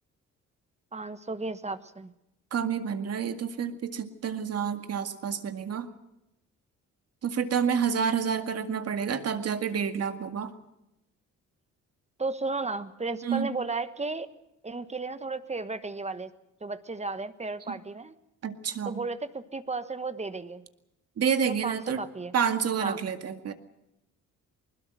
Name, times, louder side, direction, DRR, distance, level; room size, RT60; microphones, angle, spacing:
voice 1, 0.9-2.1 12.2-14.3 14.6-16.3 16.6-18.1 18.8-20.6 21.5-22.3 22.8-23.0, right 3 dB, 20° right, 12 dB, 1.2 m, -34 dB
voice 2, 2.5-5.9 7.2-10.5 13.2-13.5 18.4-19.0 21.2-22.0 22.3-23.5, right 7 dB, 55° right, 8 dB, 2.1 m, -29 dB
20.5 x 20.5 x 7.7 m, 0.87 s
cardioid pair, 90°, 30 cm